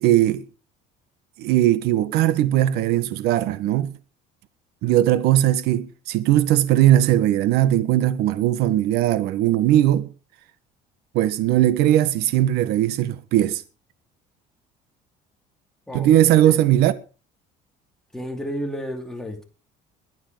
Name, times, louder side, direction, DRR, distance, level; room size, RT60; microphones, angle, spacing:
voice 1, 0.0-0.4 1.4-3.9 4.8-10.1 11.1-13.6 15.9-16.9, right 13 dB, 70° right, 1.5 m, -19 dB
voice 2, 18.1-19.4, equal, 5° left, 2.5 m, -31 dB
21.5 x 8.7 x 5.1 m
cardioid pair, 155°, 17 cm